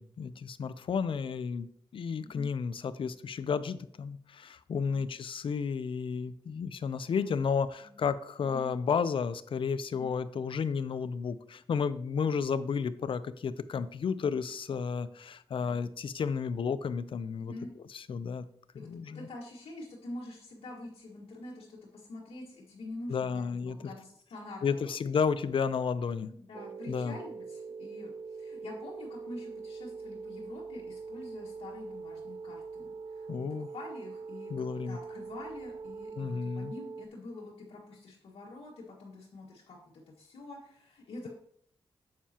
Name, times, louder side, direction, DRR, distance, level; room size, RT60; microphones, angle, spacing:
voice 1, 0.0-1.7 1.9-17.5 17.9-18.4 18.9-19.3 23.1-23.8 24.6-26.3 26.9-27.1 33.3-33.7 34.5-35.0 36.2-36.7, left 6 dB, 60° left, 14 dB, 0.5 m, -32 dB
voice 2, 7.1-7.4 7.8-8.0 8.5-8.7 10.0-10.1 12.2-12.4 17.4-17.7 18.7-24.9 26.1-33.5 33.7-41.3, left 2 dB, 90° left, -6 dB, 1.8 m, -46 dB
sound 1, 26.5-37.1, right 4 dB, 60° right, 0.4 m, -43 dB
9.4 x 7.4 x 2.9 m, 0.67 s
wide cardioid pair, 110°, 10 cm